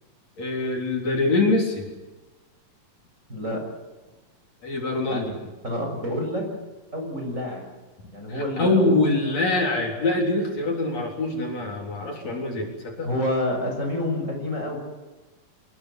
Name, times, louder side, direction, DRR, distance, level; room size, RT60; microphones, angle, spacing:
voice 1, 0.4-1.9 4.6-5.3 8.3-13.1, left 2 dB, 55° left, 0 dB, 4.8 m, -24 dB
voice 2, 3.3-3.6 5.1-5.3 5.6-6.5 6.9-7.7 8.1-9.0 13.0-14.8, left 1 dB, 20° right, 2 dB, 7.0 m, -28 dB
25.5 x 21.5 x 7.7 m, 1.2 s
omnidirectional pair, 3.7 m